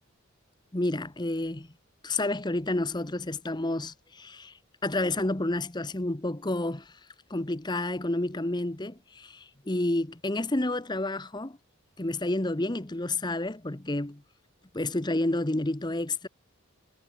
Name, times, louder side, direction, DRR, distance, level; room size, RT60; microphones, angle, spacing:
voice 1, 0.7-1.7 2.0-7.0 7.3-11.6 12.0-14.2 14.7-16.3, left 2 dB, 20° left, 0.9 m, -30 dB
head